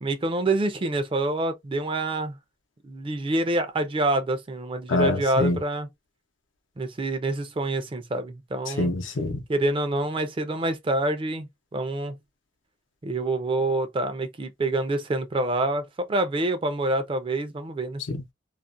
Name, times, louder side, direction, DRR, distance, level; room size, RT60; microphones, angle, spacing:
voice 1, 0.0-2.4 2.8-5.9 6.8-8.9 9.5-11.5 11.7-12.2 13.0-18.0, right 2 dB, 30° right, 0.4 m, -26 dB
voice 2, 4.9-5.6 8.7-9.4 18.1-18.3, left 2 dB, 85° left, 0.7 m, -25 dB
2.4 x 2.1 x 2.5 m
head